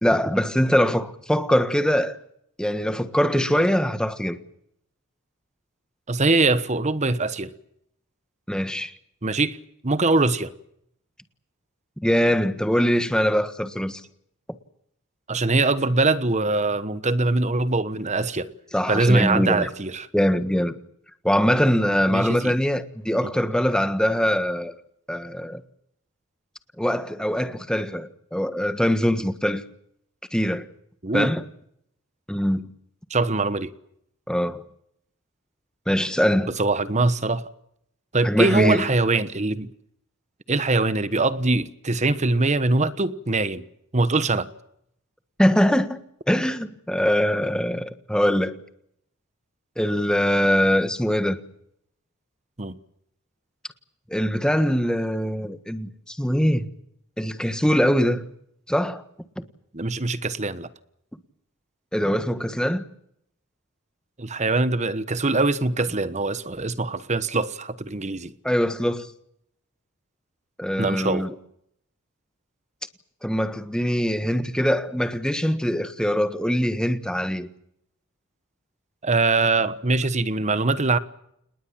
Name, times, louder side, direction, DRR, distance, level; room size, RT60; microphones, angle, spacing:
voice 1, 0.0-2.2 2.6-4.4 8.5-8.9 12.0-14.0 18.7-19.7 20.1-20.8 21.2-24.8 25.1-25.6 26.8-29.6 30.3-30.7 31.1-31.4 32.3-32.7 34.3-34.6 35.9-36.5 38.2-38.9 45.4-46.0 46.3-48.6 49.8-51.4 54.1-56.7 57.2-58.2 58.7-59.0 59.4-59.5 61.9-62.8 68.4-69.1 70.6-71.3 73.2-77.5, equal, 5° left, 1.5 m, -22 dB
voice 2, 6.1-7.5 9.2-9.6 9.8-10.5 15.3-18.5 18.9-20.1 22.1-22.5 23.2-23.3 31.0-31.3 33.1-33.7 36.6-37.4 38.1-39.7 40.5-43.7 43.9-44.5 52.6-52.8 59.7-60.7 64.2-68.3 70.8-71.3 79.0-81.0, right 3 dB, 30° right, 1.2 m, -22 dB
28.0 x 20.5 x 7.5 m
head